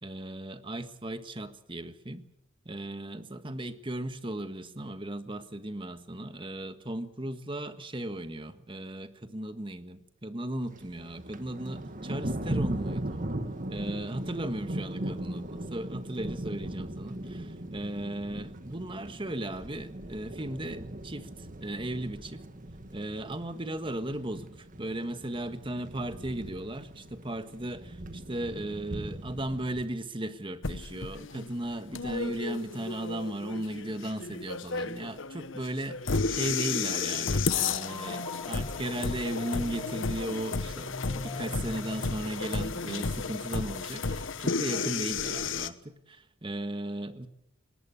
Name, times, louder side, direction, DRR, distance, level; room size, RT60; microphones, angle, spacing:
voice 1, 0.0-2.2 2.6-13.2 13.7-22.4 22.9-24.5 24.8-36.0 36.3-47.3, right 1 dB, 25° right, 1.5 m, -36 dB
Thunder, 10.6-29.9, right 1 dB, 40° right, 1.7 m, -39 dB
sound 1, 30.6-45.7, left 4 dB, 65° left, 1.1 m, -33 dB
sound 2, 37.4-42.9, left 2 dB, 20° left, 4.5 m, -43 dB
21.5 x 19.0 x 8.5 m
head